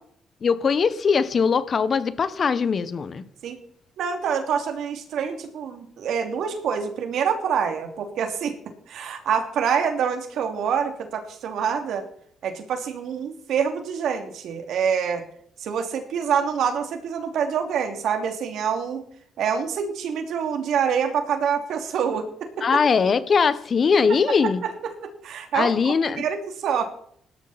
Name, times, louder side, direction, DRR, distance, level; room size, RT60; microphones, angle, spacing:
voice 1, 0.4-3.2 22.6-24.6 25.5-26.2, left 5 dB, 45° left, 14 dB, 1.3 m, -21 dB
voice 2, 4.0-8.6 8.9-12.0 12.4-15.2 15.6-19.0 19.4-22.3 22.6-22.8 24.4-26.9, right 7 dB, 75° right, 6 dB, 2.9 m, -26 dB
17.5 x 12.5 x 4.3 m, 0.65 s
cardioid pair, 90°, 0 cm